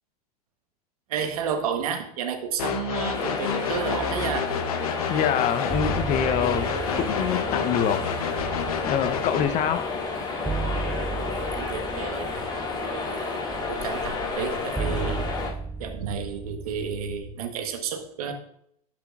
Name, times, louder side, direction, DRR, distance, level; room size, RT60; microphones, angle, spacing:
voice 1, 1.1-4.5 11.3-15.3 15.8-18.3, right 7 dB, 70° right, 6 dB, 1.2 m, -32 dB
sound 1, 2.6-9.4, left 7 dB, 70° left, 0.9 m, -30 dB
sound 2, 3.1-15.5, left 4 dB, 25° left, 2.7 m, -31 dB
voice 2, 5.1-8.0 8.8-9.9, left 9 dB, 40° left, 11 dB, 0.8 m, -25 dB
sound 3, 5.7-17.3, right 4 dB, 5° right, 0.4 m, -35 dB
11.5 x 6.0 x 2.4 m, 0.69 s
hypercardioid pair, 90°, 20 cm